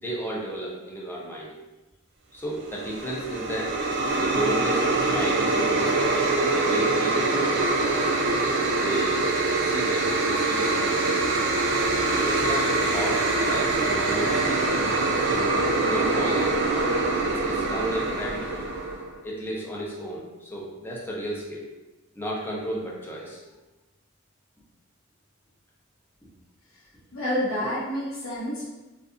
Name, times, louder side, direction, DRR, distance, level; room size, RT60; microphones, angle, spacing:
voice 1, 0.0-1.5 2.3-3.8 4.2-8.2 8.7-9.2 9.6-11.3 12.2-14.7 15.3-16.6 17.2-18.7 19.2-21.7 22.2-23.4 27.6-27.7, right 1 dB, 10° left, -4 dB, 0.5 m, -33 dB
sound 1, 2.7-19.1, right 2 dB, 60° right, 0.4 m, -24 dB
voice 2, 27.1-28.7, equal, 75° left, -6 dB, 0.5 m, -28 dB
2.6 x 2.3 x 2.4 m, 1.1 s
head